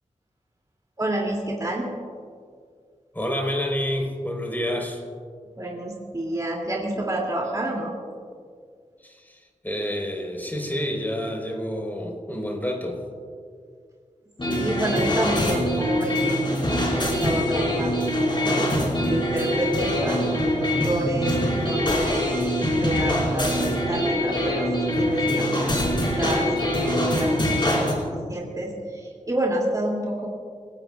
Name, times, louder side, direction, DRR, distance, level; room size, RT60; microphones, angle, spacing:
voice 1, 1.0-1.9 5.6-7.9 14.5-16.5 16.9-24.7 25.0-30.3, right 1 dB, 30° right, -2 dB, 2.8 m, -29 dB
voice 2, 3.1-5.0 9.0-13.0 23.6-23.7, equal, 15° left, 0 dB, 4.4 m, -29 dB
sound 1, 14.4-27.9, left 1 dB, 40° left, 5.2 m, -24 dB
30.0 x 17.5 x 2.5 m, 2.1 s
wide cardioid pair, 80°, 13 cm